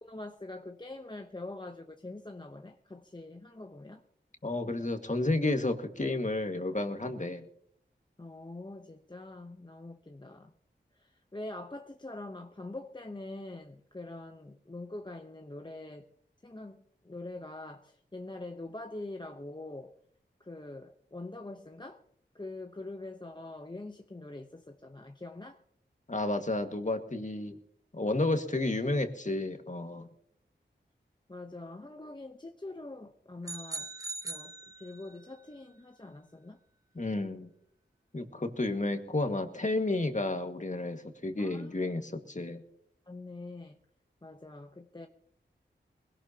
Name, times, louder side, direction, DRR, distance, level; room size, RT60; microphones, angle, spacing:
voice 1, 0.0-4.0 8.2-10.5 10.9-16.0 16.4-19.9 20.4-22.0 22.3-25.6 31.3-33.9 34.2-36.6 41.4-41.9 43.1-43.8 44.2-45.1, left 2 dB, 25° left, 5 dB, 0.9 m, -44 dB
voice 2, 4.4-7.4 26.1-27.5 27.9-30.1 37.0-37.5 38.1-42.6, left 2 dB, 40° left, 6 dB, 1.9 m, -31 dB
sound 1, 33.4-35.3, right 3 dB, 15° right, 0.7 m, -41 dB
20.5 x 17.0 x 2.9 m, 0.67 s
cardioid pair, 40°, 20 cm